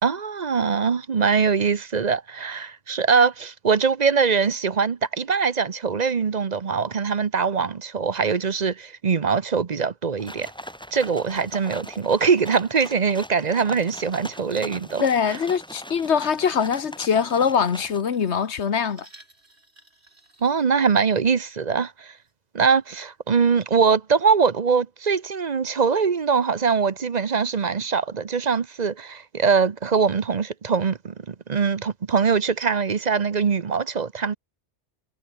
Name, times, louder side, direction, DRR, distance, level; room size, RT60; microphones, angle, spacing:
voice 1, 0.0-10.5 10.9-15.4 20.4-22.1 22.5-34.3, right 5 dB, 40° right, 0.9 m, -22 dB
sound 1, 10.2-18.0, equal, 5° left, 5.4 m, -40 dB
voice 2, 15.0-19.1, left 7 dB, 75° left, 1.5 m, -23 dB
sound 2, 17.9-21.5 22.0-22.3 22.9-23.0, right 2 dB, 65° right, 5.5 m, -54 dB
omnidirectional pair, 1.2 m